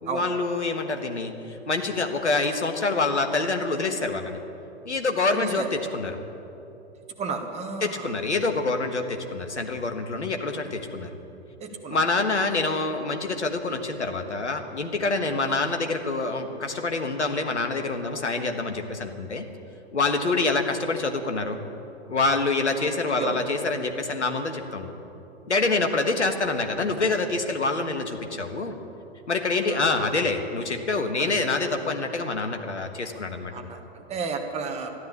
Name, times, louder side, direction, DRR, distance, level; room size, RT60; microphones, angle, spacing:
voice 1, 0.0-4.4 4.8-6.2 7.8-11.1 11.9-19.5 19.9-21.6 22.1-24.9 25.5-28.8 29.3-33.5, left 3 dB, 80° left, 6 dB, 1.4 m, -26 dB
voice 2, 5.3-5.7 7.2-8.1 11.6-12.3 15.5-15.6 20.2-20.3 23.0-23.4 29.5-30.1 31.2-31.3 33.5-34.9, right 5 dB, 20° right, 4 dB, 1.5 m, -33 dB
13.0 x 11.0 x 8.4 m, 3.0 s
figure-of-eight pair, 110°, 34 cm